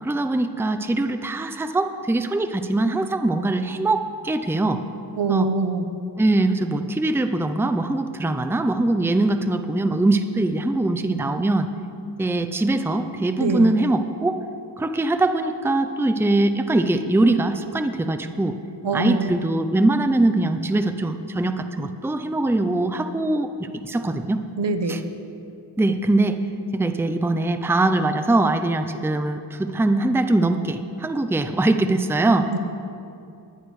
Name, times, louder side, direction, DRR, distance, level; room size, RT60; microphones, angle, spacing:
voice 1, 0.0-4.8 5.3-5.5 6.2-11.7 12.2-14.4 14.8-18.6 18.9-23.5 23.8-24.4 24.9-25.0 25.8-26.4 26.7-32.5, right 2 dB, 5° right, 8 dB, 0.5 m, -22 dB
voice 2, 5.2-5.9 13.4-13.7 18.8-19.4 24.6-25.0 32.5-32.6, right 3 dB, 75° right, 8 dB, 0.9 m, -24 dB
19.5 x 11.0 x 3.2 m, 2.6 s
wide cardioid pair, 85°, 42 cm